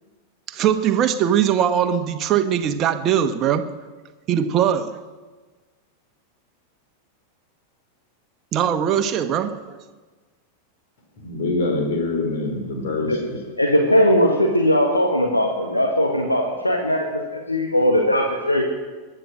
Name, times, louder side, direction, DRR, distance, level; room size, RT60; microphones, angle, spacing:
voice 1, 0.5-3.7 4.3-5.0 8.5-9.8, right 9 dB, 30° right, 1.1 m, -21 dB
voice 2, 11.2-13.4, left 3 dB, 55° left, 4.5 m, -25 dB
voice 3, 13.6-17.1 17.3-18.6, equal, 85° left, 1.8 m, -19 dB
22.0 x 10.0 x 6.4 m
figure-of-eight pair, 90°, 0 cm